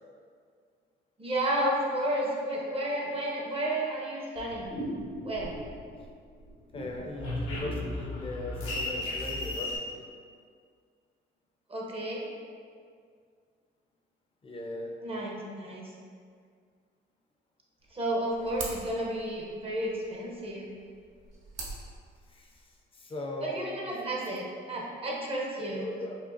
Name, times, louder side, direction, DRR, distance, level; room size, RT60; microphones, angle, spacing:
voice 1, 1.2-4.8 5.2-5.5 11.7-12.3 15.0-15.9 17.9-20.7 23.4-25.9, right 1 dB, 30° right, -3 dB, 0.6 m, -32 dB
sound 1, 4.4-6.1 6.4-9.8, left 1 dB, 90° left, 1.0 m, -35 dB
voice 2, 6.7-10.1 14.4-14.9 22.3-24.3 25.6-26.2, left 2 dB, 25° left, 1 dB, 0.5 m, -39 dB
sound 2, 17.8-22.8, right 3 dB, 75° right, 0.7 m, -45 dB
5.0 x 2.4 x 2.5 m, 2.1 s
cardioid pair, 90°, 20 cm